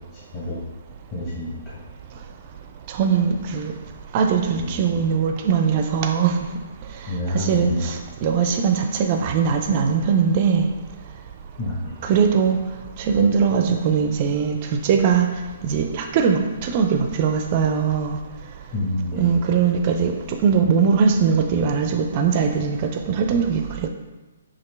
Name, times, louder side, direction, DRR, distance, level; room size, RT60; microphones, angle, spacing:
voice 1, 1.1-1.8 4.6-4.7 7.1-7.8 11.6-11.9 18.7-19.3, left 1 dB, 30° left, -8 dB, 1.0 m, -28 dB
voice 2, 2.9-3.7 4.1-6.4 7.3-10.7 12.0-12.6 13.0-15.3 15.6-18.2 19.2-20.2 20.4-23.9, right 6 dB, 35° right, 6 dB, 0.4 m, -20 dB
4.9 x 2.9 x 3.2 m, 1.1 s
figure-of-eight pair, 125°, 0 cm